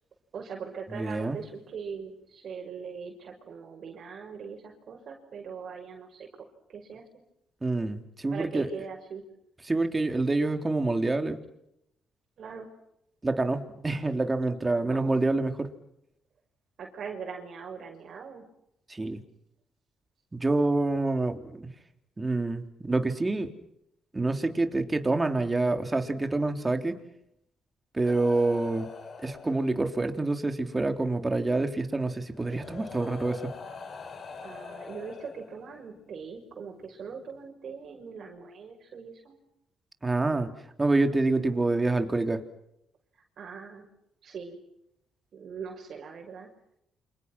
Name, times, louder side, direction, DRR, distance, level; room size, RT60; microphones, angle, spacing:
voice 1, 0.3-6.3 6.7-7.0 8.3-9.2 12.4-12.7 14.8-15.2 16.8-18.4 34.4-39.4 43.4-43.9 44.2-44.6 45.3-46.5, right 6 dB, 60° right, 0 dB, 6.2 m, -41 dB
voice 2, 0.9-1.4 7.6-8.7 9.6-11.4 13.2-15.7 18.9-19.2 20.3-21.7 22.2-23.5 24.1-27.0 27.9-28.9 29.2-33.5 40.0-40.5 40.8-42.4, right 2 dB, 20° right, 6 dB, 3.7 m, -27 dB
sound 1, 28.0-30.2 31.5-31.6 32.3-36.0 37.0-37.2, left 5 dB, 55° left, 7.8 m, -44 dB
29.5 x 27.5 x 6.2 m, 0.78 s
cardioid pair, 90°, 0 cm